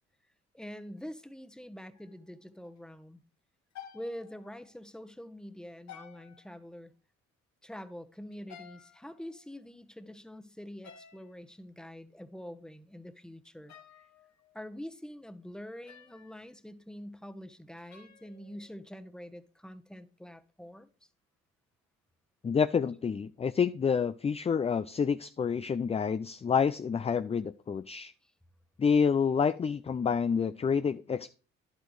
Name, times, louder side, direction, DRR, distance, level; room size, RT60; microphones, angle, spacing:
voice 1, 0.5-3.2 3.9-6.9 7.6-13.8 14.5-20.9 28.2-28.3, equal, ahead, 1.1 m, -45 dB
sound 1, 1.9-2.4 2.6-2.8 3.7-4.8 5.9-6.7 8.3-9.8 10.8-11.4 13.5-14.6 15.9-16.5 17.8-19.0, left 8 dB, 60° left, 1.2 m, -54 dB
voice 2, 22.4-28.1 28.8-31.3, left 6 dB, 20° left, 0.4 m, -28 dB
11.0 x 8.2 x 3.2 m
hypercardioid pair, 50°, 31 cm